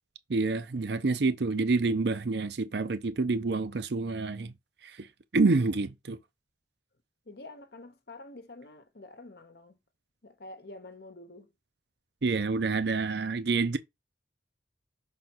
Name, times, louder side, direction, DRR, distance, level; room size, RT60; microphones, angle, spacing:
voice 1, 0.3-4.5 4.8-5.1 5.3-6.2 12.2-13.8, right 3 dB, 65° right, 0.6 m, -27 dB
voice 2, 7.3-9.8 10.2-11.5, left 2 dB, 60° left, 1.0 m, -47 dB
5.6 x 3.9 x 6.0 m
head